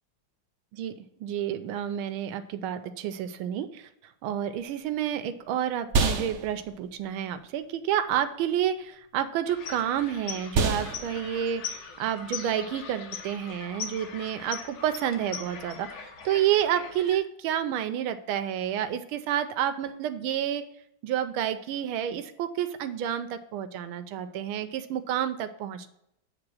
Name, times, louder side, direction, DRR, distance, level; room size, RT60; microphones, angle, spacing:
voice 1, 1.2-3.9 4.2-20.7 21.0-25.9, right 10 dB, 90° right, 9 dB, 1.4 m, -29 dB
sound 1, 4.6-14.2, right 4 dB, 75° right, 0.6 m, -33 dB
sound 2, 9.5-17.2, left 6 dB, 80° left, 1.9 m, -40 dB
7.8 x 3.6 x 6.1 m, 0.77 s
omnidirectional pair, 2.2 m